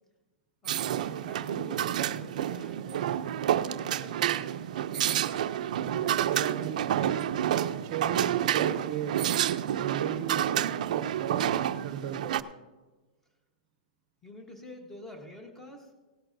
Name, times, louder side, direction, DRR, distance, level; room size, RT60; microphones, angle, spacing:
voice 1, 0.6-3.3 4.0-4.4 4.7-5.1 14.2-15.9, left 1 dB, 10° left, 3 dB, 1.2 m, -48 dB
sound 1, 0.6-12.4, right 11 dB, 60° right, 0.5 m, -29 dB
voice 2, 5.7-7.2 7.8-9.2 9.8-10.5 10.9-11.5 11.8-12.4, right 9 dB, 30° right, 9 dB, 0.7 m, -36 dB
17.5 x 12.5 x 2.7 m, 1.2 s
supercardioid pair, 175°, 5 cm